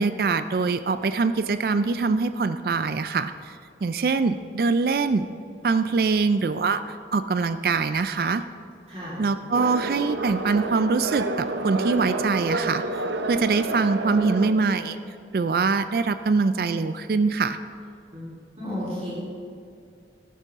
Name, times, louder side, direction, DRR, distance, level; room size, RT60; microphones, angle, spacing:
voice 1, 0.0-5.3 5.6-8.4 9.2-12.8 13.3-15.0 15.3-17.6, right 4 dB, 55° right, 11 dB, 0.3 m, -23 dB
voice 2, 8.9-9.2 18.1-18.2 18.5-19.1, equal, 35° right, -9 dB, 3.6 m, -32 dB
sound 1, 9.5-14.5, right 2 dB, 85° right, 0.7 m, -29 dB
13.5 x 12.0 x 3.6 m, 2.3 s
head